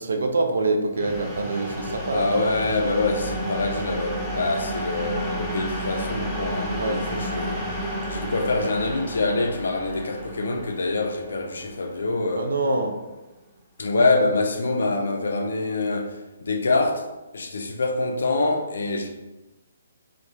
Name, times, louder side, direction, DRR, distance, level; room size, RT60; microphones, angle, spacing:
voice 1, 0.0-2.4 6.7-7.0 12.4-12.9, right 2 dB, 70° right, 0.4 m, -25 dB
sound 1, 0.9-12.6, right 1 dB, 10° left, 0.5 m, -31 dB
voice 2, 2.0-7.6 8.1-12.5 13.8-17.1 17.3-19.1, left 3 dB, 70° left, 0.4 m, -25 dB
2.2 x 2.1 x 2.8 m
figure-of-eight pair, 135°, 0 cm